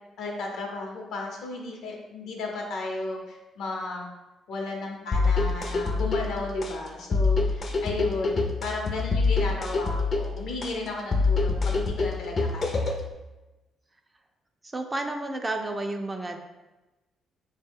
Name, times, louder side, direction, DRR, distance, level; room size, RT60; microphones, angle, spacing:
voice 1, 0.2-4.1 4.5-12.9, left 2 dB, 80° left, 0 dB, 0.7 m, -34 dB
sound 1, 5.1-13.1, left 3 dB, 40° left, 0.5 m, -26 dB
voice 2, 14.7-16.4, right 2 dB, 20° right, 5 dB, 0.4 m, -31 dB
3.9 x 2.1 x 3.5 m, 1.1 s
cardioid pair, 90°, 0 cm